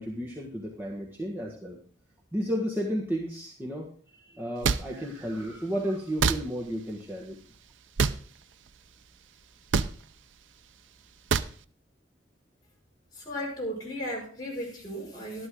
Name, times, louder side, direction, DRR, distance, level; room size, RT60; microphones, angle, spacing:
voice 1, 0.0-1.8 2.3-7.4, equal, 10° right, -3 dB, 1.5 m, -33 dB
sound 1, 4.6-4.8 6.2-6.4 8.0-8.2 9.7-9.9 11.3-11.5, right 5 dB, 85° right, 0.6 m, -24 dB
voice 2, 13.1-15.5, equal, 20° left, -3 dB, 5.5 m, -35 dB
13.0 x 11.5 x 3.8 m, 0.43 s
head